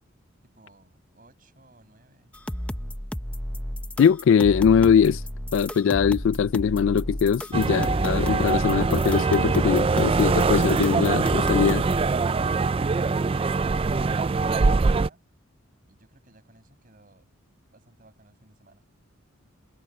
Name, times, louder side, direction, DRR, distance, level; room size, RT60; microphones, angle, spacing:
voice 1, 0.5-2.3 15.9-17.3 17.7-18.9, right 2 dB, 40° right, 6.2 m, -58 dB
sound 1, 2.3-12.1, equal, 5° left, 0.8 m, -33 dB
voice 2, 4.0-5.2 5.5-11.8, left 7 dB, 65° left, 0.3 m, -21 dB
sound 2, 7.5-15.1, right 4 dB, 25° right, 0.3 m, -23 dB
head